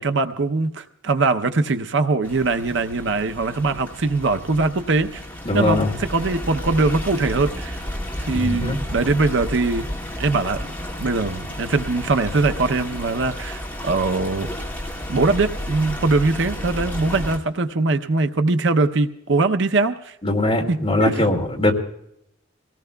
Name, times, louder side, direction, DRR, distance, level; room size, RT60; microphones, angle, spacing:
voice 1, 0.0-5.2 5.5-7.8 8.2-9.9 10.2-10.6 11.0-14.5 15.1-20.1 20.7-21.3, right 3 dB, 65° right, 8 dB, 0.7 m, -22 dB
Stream, 2.2-17.4, left 1 dB, 10° left, 2.1 m, -32 dB
voice 2, 5.4-5.9 8.3-8.8 20.2-21.7, left 1 dB, 30° left, 0 dB, 2.3 m, -21 dB
25.0 x 18.0 x 2.3 m, 0.76 s
head